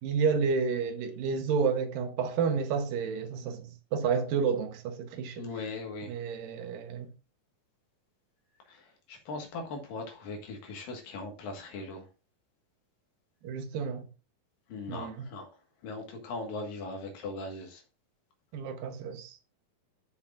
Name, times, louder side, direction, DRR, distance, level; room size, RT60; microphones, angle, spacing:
voice 1, 0.0-5.5 6.1-7.1 13.4-14.1 14.9-15.3 18.5-19.4, right 5 dB, 80° right, 2.8 m, -30 dB
voice 2, 5.4-6.1 8.7-12.1 14.7-15.5 15.8-17.8, left 3 dB, 80° left, 3.3 m, -39 dB
13.0 x 6.4 x 2.5 m
omnidirectional pair, 4.0 m